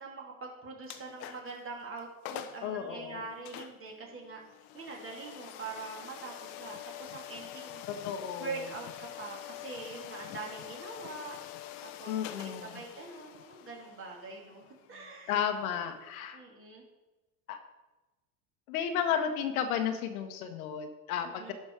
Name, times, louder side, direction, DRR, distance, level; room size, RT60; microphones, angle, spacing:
voice 1, 0.0-4.4 4.7-7.8 8.4-11.3 12.0-12.1 12.4-14.6 14.9-15.4 15.7-15.8 16.3-16.8 21.2-21.5, right 4 dB, 30° right, -1 dB, 2.9 m, -43 dB
sound 1, 0.8-1.6 2.0-2.1 2.2-2.7 3.4-16.2, left 12 dB, 55° left, 0.9 m, -46 dB
voice 2, 2.6-3.2 7.9-8.6 12.1-12.8 15.3-16.4 17.5-17.6 18.7-21.5, left 8 dB, 75° left, 7 dB, 1.3 m, -33 dB
11.5 x 5.4 x 4.8 m, 1.1 s
hypercardioid pair, 95°, 43 cm